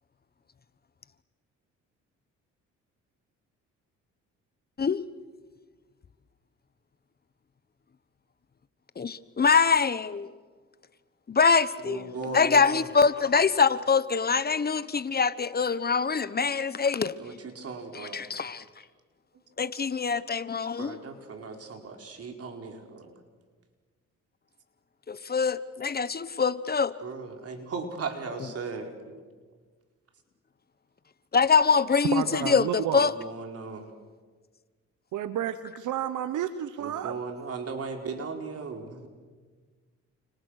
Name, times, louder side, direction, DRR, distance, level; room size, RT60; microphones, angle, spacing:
voice 1, 9.0-10.3 11.3-17.1 17.9-18.6 19.6-21.0 25.1-26.9 31.3-33.1, left 5 dB, 30° left, 1.1 m, -24 dB
voice 2, 11.8-12.8 17.2-18.2 20.8-23.1 27.0-29.2 33.0-33.9 36.8-39.1, right 4 dB, 50° right, 4.6 m, -37 dB
voice 3, 32.1-33.0 35.1-37.1, right 10 dB, 75° right, 1.1 m, -31 dB
30.0 x 29.0 x 6.6 m
cardioid pair, 90°, 30 cm